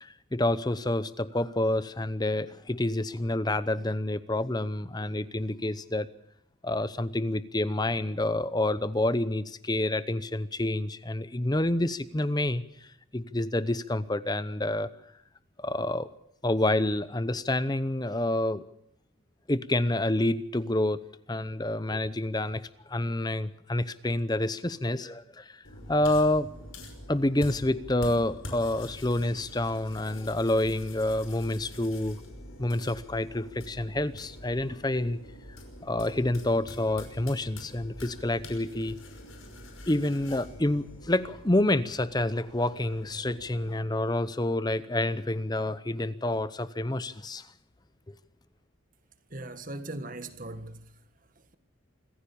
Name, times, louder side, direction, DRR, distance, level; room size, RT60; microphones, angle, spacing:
voice 1, 0.0-6.1 6.6-12.6 13.1-14.9 15.6-16.1 16.4-18.6 19.5-21.0 21.3-22.6 22.9-25.6 25.9-26.5 27.1-32.2 32.6-35.2 35.8-39.0 39.9-47.5, left 1 dB, 20° left, 0.8 m, -28 dB
sound 1, 25.6-43.8, left 1 dB, 75° left, 5.6 m, -45 dB
voice 2, 49.3-50.8, right 2 dB, 40° right, 1.6 m, -38 dB
26.5 x 15.0 x 7.0 m
head